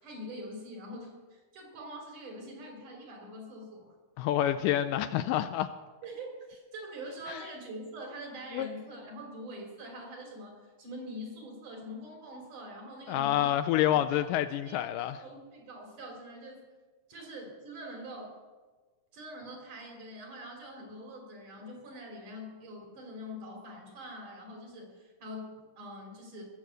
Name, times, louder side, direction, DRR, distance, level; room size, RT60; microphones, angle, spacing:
voice 1, 0.0-3.9 6.0-13.5 13.9-14.2 14.7-14.8 15.2-16.6 17.1-18.4 19.1-26.4, equal, 60° right, 0 dB, 4.9 m, -44 dB
voice 2, 4.2-5.7 7.3-7.4 8.5-8.7 13.1-15.2, left 12 dB, 80° left, 11 dB, 2.0 m, -28 dB
19.5 x 7.0 x 7.8 m, 1.3 s
omnidirectional pair, 4.1 m